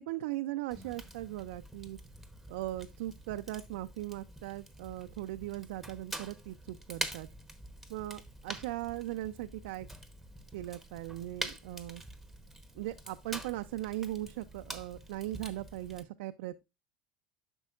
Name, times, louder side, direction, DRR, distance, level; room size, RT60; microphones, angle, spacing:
voice 1, 0.0-2.0 2.5-7.3 7.9-9.9 10.5-12.0 12.7-16.6, right 15 dB, 80° right, 0.4 m, -39 dB
Fire, 0.7-16.0, right 1 dB, ahead, 0.9 m, -46 dB
9.8 x 6.2 x 2.4 m
supercardioid pair, 105°, 5 cm